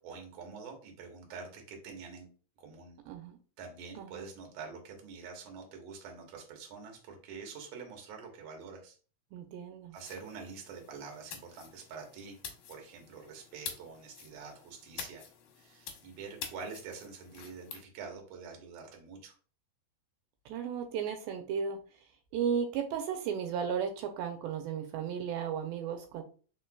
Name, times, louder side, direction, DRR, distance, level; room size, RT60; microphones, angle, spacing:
voice 1, 0.0-2.3 2.6-3.0 3.6-9.0 9.9-12.4 12.7-15.3 15.6-19.3, right 5 dB, 65° right, 2 dB, 1.6 m, -46 dB
voice 2, 3.1-3.4 4.0-4.2 9.3-9.9 20.5-21.8 22.3-26.2, right 7 dB, 80° right, 6 dB, 2.2 m, -34 dB
sound 1, 10.0-17.8, left 7 dB, 75° left, 1.8 m, -48 dB
4.5 x 4.3 x 2.2 m, 0.39 s
omnidirectional pair, 4.3 m